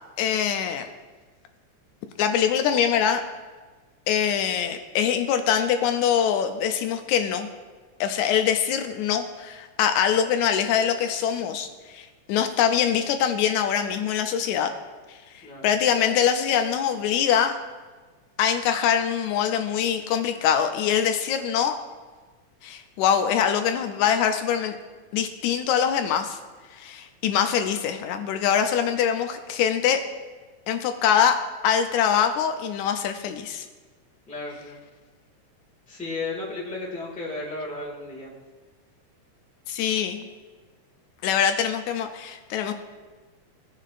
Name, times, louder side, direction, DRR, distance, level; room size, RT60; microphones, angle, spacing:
voice 1, 0.2-0.9 2.2-3.2 4.1-7.5 8.0-14.7 15.6-17.5 18.4-21.8 22.6-24.8 25.1-26.4 26.8-30.0 30.7-31.4 31.6-33.7 39.7-40.2 41.2-42.7, left 8 dB, 80° left, 7 dB, 1.9 m, -23 dB
voice 2, 34.3-34.8 35.9-38.3, left 3 dB, 5° left, -5 dB, 1.1 m, -34 dB
17.5 x 6.3 x 2.5 m, 1.4 s
omnidirectional pair, 3.4 m